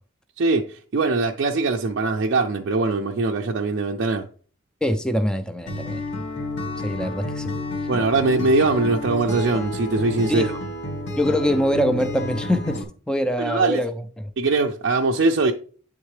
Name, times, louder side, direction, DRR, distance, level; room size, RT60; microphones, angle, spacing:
voice 1, 0.4-4.3 7.9-10.5 13.4-13.8 14.4-15.5, right 3 dB, 60° right, 0.4 m, -21 dB
voice 2, 4.8-6.0 6.8-7.5 10.3-10.5 11.2-14.3, equal, 5° left, 0.3 m, -24 dB
Acoustic guitar, 5.7-12.8, left 1 dB, 60° left, 1.2 m, -30 dB
8.8 x 3.6 x 3.2 m
head